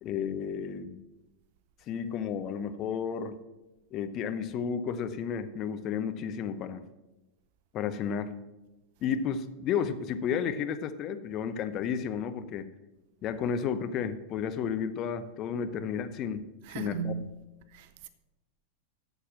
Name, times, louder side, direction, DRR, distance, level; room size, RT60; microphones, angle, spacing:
voice 1, 0.0-1.0 1.9-3.4 3.9-6.8 7.7-8.3 9.0-12.7 13.2-17.1, left 7 dB, 35° left, 0.7 m, -32 dB
voice 2, 16.6-17.4 17.7-18.1, right 7 dB, 50° right, 0.7 m, -37 dB
8.6 x 7.0 x 7.4 m
figure-of-eight pair, 90°, 0 cm